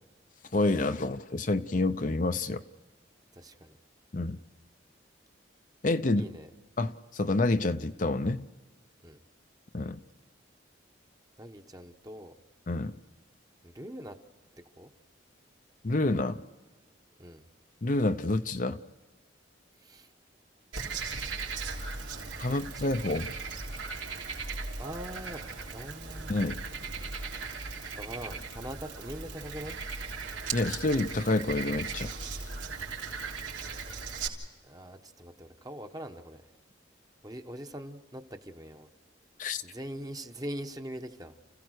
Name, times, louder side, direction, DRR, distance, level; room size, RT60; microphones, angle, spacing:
voice 1, 0.5-2.6 4.1-4.4 5.8-6.3 6.8-8.5 9.7-10.0 12.7-12.9 15.8-16.4 17.8-18.8 22.4-23.3 26.3-26.6 30.5-32.1 39.4-39.6, left 2 dB, 40° left, 9 dB, 0.6 m, -28 dB
voice 2, 3.3-3.8 6.1-6.5 9.0-9.2 11.4-12.3 13.6-14.2 14.8-14.9 17.2-17.5 19.8-20.1 22.5-22.9 24.8-26.4 27.9-29.9 34.6-36.4 37.2-38.9 39.6-41.4, equal, 20° right, 6 dB, 1.1 m, -42 dB
Frog, 20.7-34.3, right 4 dB, 85° right, 3.5 m, -38 dB
30.0 x 16.0 x 6.4 m, 1.3 s
head